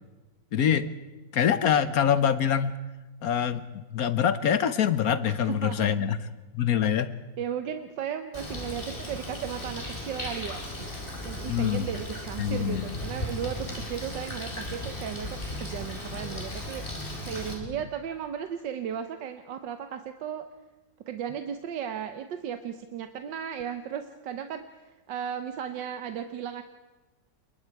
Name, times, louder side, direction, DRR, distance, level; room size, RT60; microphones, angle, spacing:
voice 1, 0.5-0.9 1.3-2.8 3.2-6.2 6.5-7.1 11.5-11.8 12.4-12.9 17.6-17.7, left 8 dB, 60° left, 13 dB, 1.2 m, -25 dB
voice 2, 5.4-5.8 7.4-10.6 11.2-20.5 21.1-26.6, right 9 dB, 75° right, 8 dB, 1.6 m, -35 dB
Bird, 8.3-17.5, left 1 dB, 25° left, 4.3 m, -36 dB
28.0 x 22.0 x 4.7 m, 1.2 s
omnidirectional pair, 2.0 m